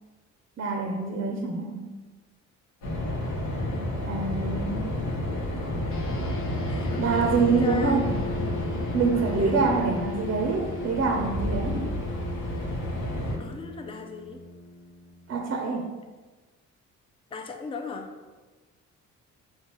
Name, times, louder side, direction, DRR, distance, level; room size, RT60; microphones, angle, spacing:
voice 1, 0.6-1.9 4.0-4.9 7.0-8.2 8.9-11.9 15.3-15.9, right 4 dB, 45° right, 1 dB, 0.5 m, -26 dB
sound 1, 2.8-13.4, left 1 dB, 90° left, 0.9 m, -31 dB
voice 2, 3.5-3.9 6.7-8.0 9.4-9.6 13.4-14.4 17.3-18.1, left 4 dB, 20° left, 4 dB, 0.4 m, -38 dB
sound 2, 5.9-15.6, left 3 dB, 45° left, 0.7 m, -38 dB
5.2 x 2.3 x 3.0 m, 1.3 s
cardioid pair, 90°, 30 cm